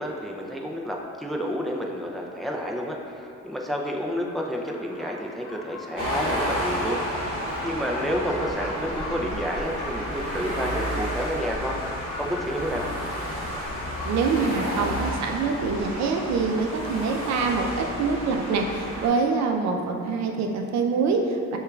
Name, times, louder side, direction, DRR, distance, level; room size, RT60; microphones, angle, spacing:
voice 1, 0.0-11.8 12.2-12.9, equal, ahead, -1 dB, 0.3 m, -30 dB
sound 1, 4.5-14.6, left 1 dB, 65° left, 0.8 m, -41 dB
sound 2, 6.0-19.1, equal, 15° left, 1.5 m, -31 dB
voice 2, 14.1-21.6, right 4 dB, 65° right, 3 dB, 0.5 m, -25 dB
6.6 x 2.3 x 2.3 m, 2.7 s
cardioid pair, 90°, 30 cm